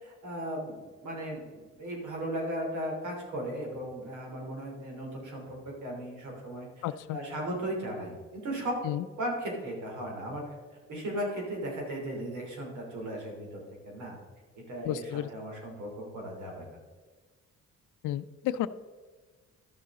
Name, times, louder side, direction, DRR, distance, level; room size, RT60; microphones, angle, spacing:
voice 1, 0.0-6.8 7.1-8.7 9.2-10.4 10.9-14.2 14.7-16.7, right 1 dB, 75° right, -1 dB, 3.2 m, -36 dB
voice 2, 6.8-7.2 8.8-9.0 14.9-15.3 18.0-18.7, left 12 dB, 85° left, 14 dB, 0.5 m, -32 dB
12.5 x 6.9 x 3.7 m, 1.4 s
cardioid pair, 90°, 30 cm